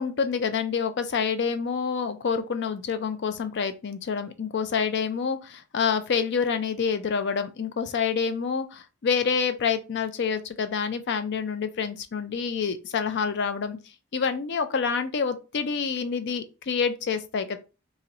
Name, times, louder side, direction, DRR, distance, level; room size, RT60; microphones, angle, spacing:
voice 1, 0.0-13.8 14.1-17.6, left 6 dB, 50° left, 0.4 m, -27 dB
3.9 x 3.0 x 2.8 m
head